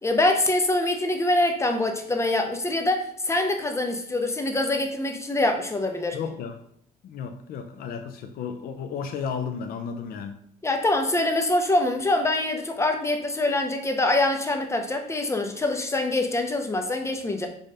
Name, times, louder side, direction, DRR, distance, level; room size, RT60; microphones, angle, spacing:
voice 1, 0.0-6.2 10.6-17.5, left 2 dB, 15° left, 5 dB, 1.1 m, -24 dB
voice 2, 6.1-6.6 7.0-10.4, left 6 dB, 60° left, 6 dB, 0.7 m, -33 dB
5.4 x 3.5 x 5.5 m, 0.66 s
cardioid pair, 110°, 17 cm